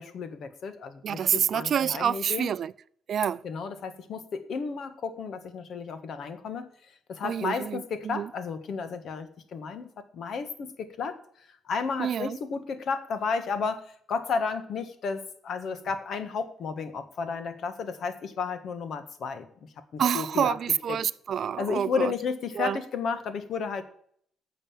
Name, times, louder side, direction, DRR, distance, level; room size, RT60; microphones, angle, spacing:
voice 1, 0.0-2.5 3.4-6.7 7.1-9.9 10.1-20.5 20.9-21.0 21.6-23.8, left 5 dB, 65° left, 1.6 m, -33 dB
voice 2, 1.0-2.7 3.1-3.4 7.2-8.3 12.0-12.4 20.0-22.1 22.6-22.8, right 8 dB, 60° right, 0.4 m, -27 dB
9.2 x 6.8 x 8.9 m
cardioid pair, 90°, 0 cm